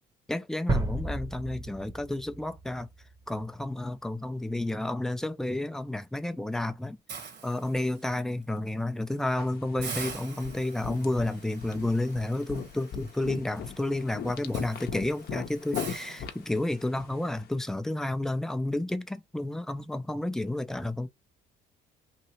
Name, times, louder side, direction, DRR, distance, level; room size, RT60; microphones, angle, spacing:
voice 1, 0.3-2.9 3.3-7.0 7.4-21.1, left 1 dB, ahead, 0.4 m, -31 dB
sound 1, 0.7-3.5, right 2 dB, 20° right, 0.8 m, -32 dB
Hiss, 7.1-8.2 8.7-8.9 9.2-9.3 9.8-16.9, right 5 dB, 60° right, 1.3 m, -44 dB
sound 2, 9.3-17.4, left 7 dB, 50° left, 0.7 m, -40 dB
3.1 x 2.7 x 2.8 m
cardioid pair, 100°, 20 cm